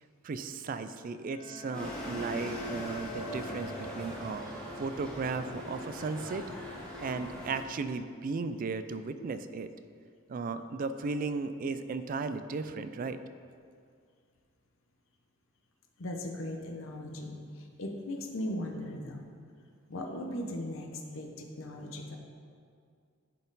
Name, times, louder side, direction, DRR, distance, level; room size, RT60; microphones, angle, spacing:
voice 1, 0.2-4.5 4.8-6.4 7.0-9.7 10.3-13.2, right 4 dB, 40° right, 11 dB, 0.3 m, -35 dB
Bowed string instrument, 1.2-4.6, left 3 dB, 25° left, 0.9 m, -47 dB
sound 1, 1.7-7.6, equal, 5° left, 1.5 m, -40 dB
voice 2, 16.0-19.2 19.9-22.2, left 1 dB, 65° left, 2 dB, 0.8 m, -38 dB
10.5 x 4.2 x 4.0 m, 2.2 s
head